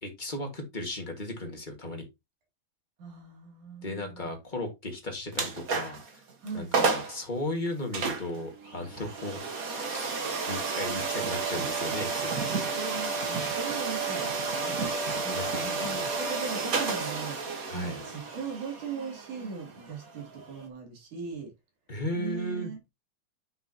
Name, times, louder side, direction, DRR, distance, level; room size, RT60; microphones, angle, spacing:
voice 1, 0.0-2.0 3.8-6.2 6.5-9.4 9.8-12.5 15.3-15.9 17.7-18.0 21.9-22.7, left 1 dB, 30° left, 0.8 m, -36 dB
voice 2, 3.0-4.3 6.4-7.0 12.7-14.7 15.2-21.5 22.1-22.9, right 5 dB, 65° right, 4.1 m, -39 dB
sound 1, 5.3-6.1 6.5-6.6 6.7-7.2 7.9-20.7, right 4 dB, 85° right, 0.7 m, -31 dB
9.8 x 6.0 x 2.9 m
omnidirectional pair, 3.9 m